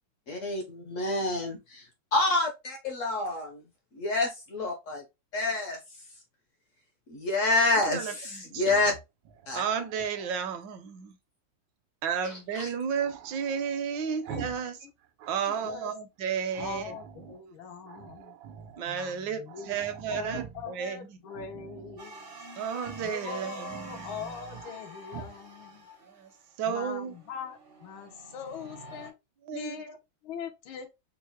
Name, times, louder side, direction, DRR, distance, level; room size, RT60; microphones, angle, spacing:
voice 1, 0.3-0.6 0.9-1.6 2.1-3.6 3.9-5.0 5.3-5.8 7.1-8.9 9.5-9.6 12.2-12.7, left 2 dB, 65° left, 0.8 m, -28 dB
voice 2, 7.7-8.7 9.5-11.2 12.0-14.8 15.3-17.0 18.8-21.2 22.6-24.2 26.1-26.3 26.6-27.1 29.5-29.8, right 7 dB, 75° right, 1.2 m, -33 dB
Growling, 8.6-10.6 13.0-14.7 15.0-15.9 16.5-17.4 17.8-18.8 19.2-19.3 19.5-20.8 21.3-22.1 22.8-23.2 23.5-24.8 25.1-25.4, right 8 dB, 90° right, 1.4 m, -45 dB
voice 3, 15.5-15.9 16.6-18.4 18.9-19.8 20.1-22.3 22.9-25.9 26.7-29.1 29.5-30.0 30.2-30.9, left 7 dB, 90° left, 1.6 m, -41 dB
sound 1, 22.0-29.1, right 2 dB, 55° right, 0.6 m, -47 dB
4.4 x 2.0 x 2.9 m
omnidirectional pair, 2.1 m